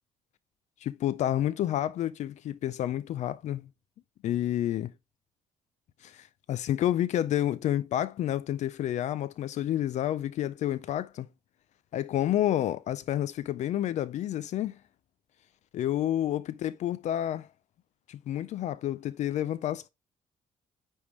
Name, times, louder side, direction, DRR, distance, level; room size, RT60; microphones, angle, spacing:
voice 1, 0.8-3.7 4.2-4.9 6.0-11.3 11.9-14.8 15.7-17.5 18.1-19.9, left 12 dB, 55° left, 0.4 m, -29 dB
9.7 x 3.6 x 3.1 m
cardioid pair, 165°, 14 cm